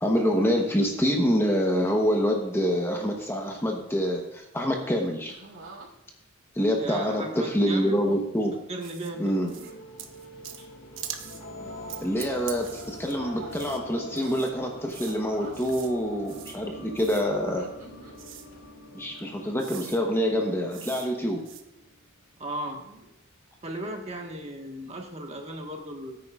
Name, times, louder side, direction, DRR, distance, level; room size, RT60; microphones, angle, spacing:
voice 1, 0.0-5.3 6.5-8.5 9.2-9.5 12.0-17.7 18.9-21.4, equal, 10° left, 1 dB, 0.9 m, -26 dB
sound 1, 5.3-5.9 6.8-7.4 8.0-8.2 9.2-9.8 10.3-10.6 11.3-12.3 12.6-13.6 14.0-14.5 15.1-15.6 16.6-18.2 19.4-19.8 20.4-20.8 21.0-21.1 22.7-23.1 24.2-24.5, right 2 dB, 90° right, 3.2 m, -48 dB
voice 2, 6.8-8.0 8.7-9.4 22.4-22.8 23.6-26.2, right 1 dB, 30° right, 2 dB, 1.4 m, -36 dB
sound 2, 8.8-9.1 9.5-9.7 10.0-10.6 11.0-11.4 11.9-13.2 13.5-13.8 14.2-14.5 14.9-15.2 15.5-15.9 16.2-16.6 17.0-17.3 18.1-18.5 19.2-19.3 19.6-20.0 20.7-21.1 21.4-21.6, right 9 dB, 65° right, 1.0 m, -42 dB
sound 3, 9.1-22.0, left 1 dB, 70° left, 2.0 m, -45 dB
18.0 x 9.5 x 2.4 m, 0.86 s
head